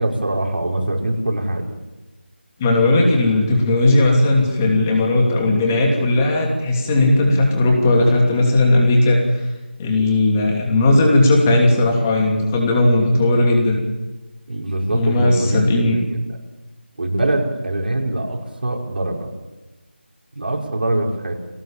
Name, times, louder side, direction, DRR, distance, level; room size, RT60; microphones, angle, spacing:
voice 1, 0.0-1.8 14.5-15.6 15.9-16.4 17.0-19.3 20.3-21.3, right 1 dB, 55° right, 0 dB, 5.2 m, -23 dB
voice 2, 2.6-9.2 9.8-13.8 14.9-16.0, left 2 dB, 15° left, 0 dB, 2.9 m, -16 dB
24.5 x 18.5 x 7.4 m, 1.1 s
figure-of-eight pair, 170°, 6 cm